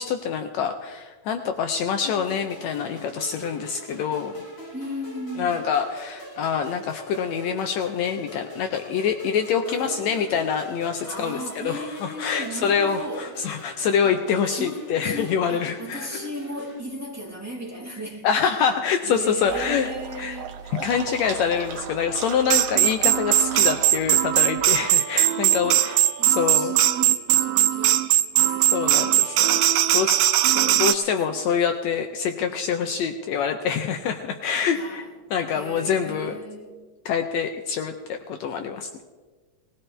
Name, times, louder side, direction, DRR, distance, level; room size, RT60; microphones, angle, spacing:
voice 1, 0.0-4.4 5.4-16.1 18.2-19.9 20.2-20.4 20.7-26.0 26.3-26.8 28.7-29.6 29.9-35.0 35.3-36.3 37.0-39.0, left 7 dB, 75° left, 6 dB, 1.8 m, -26 dB
sound 1, 2.0-16.8, left 1 dB, 25° left, 1.9 m, -42 dB
voice 2, 4.7-5.6 9.7-10.5 11.0-13.3 14.5-18.3 19.0-20.6 23.6-23.9 25.4-28.1 28.4-30.1 30.6-30.9 31.3-31.4 34.7-35.1 35.5-36.8, equal, 5° right, -4 dB, 2.3 m, -37 dB
sound 2, 19.5-24.6, right 7 dB, 65° right, 1.6 m, -36 dB
sound 3, 22.5-30.9, right 13 dB, 80° right, 1.5 m, -20 dB
20.0 x 15.5 x 3.3 m, 1.4 s
omnidirectional pair, 3.4 m